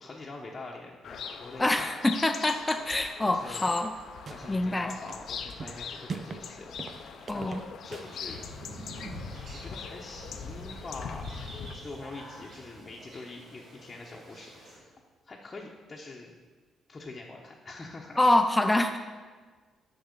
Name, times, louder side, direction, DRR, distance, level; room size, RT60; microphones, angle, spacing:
voice 1, 0.0-1.9 3.3-3.7 4.3-6.7 7.3-8.4 9.5-11.4 11.7-14.9 15.2-16.4 16.9-18.2, left 3 dB, 30° left, -2 dB, 0.9 m, -44 dB
sound 1, 1.0-11.7, left 6 dB, 65° left, 0.6 m, -41 dB
voice 2, 1.6-3.9 4.5-5.0 7.3-7.6 18.2-19.0, left 1 dB, 15° left, 6 dB, 0.5 m, -25 dB
sound 2, 3.7-4.6 4.9-6.5 6.8-8.2, right 5 dB, 45° right, 0.5 m, -42 dB
sound 3, 7.8-14.8, right 1 dB, 65° right, 2.4 m, -47 dB
6.6 x 6.0 x 6.7 m, 1.4 s
cardioid pair, 90°, 0 cm